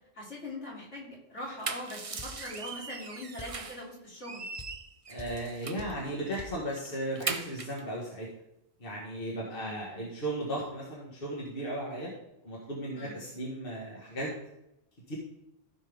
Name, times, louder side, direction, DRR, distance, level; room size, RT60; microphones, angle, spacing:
voice 1, 0.1-4.4 9.5-10.1 12.9-13.2, left 1 dB, 70° left, -5 dB, 3.6 m, -42 dB
sound 1, 1.4-3.9 4.2-5.9 6.3-6.5 6.8-7.8, right 4 dB, 35° right, 0.6 m, -39 dB
sound 2, 2.2-2.4 3.4-3.6 4.6-4.8 5.2-5.4 5.8-6.0 6.4-6.6, left 3 dB, 20° left, 0.8 m, -44 dB
voice 2, 5.1-8.3 8.8-12.1 12.4-14.3 15.1-15.2, right 1 dB, 50° left, -4 dB, 2.1 m, -36 dB
15.0 x 5.6 x 3.6 m, 0.86 s
omnidirectional pair, 1.2 m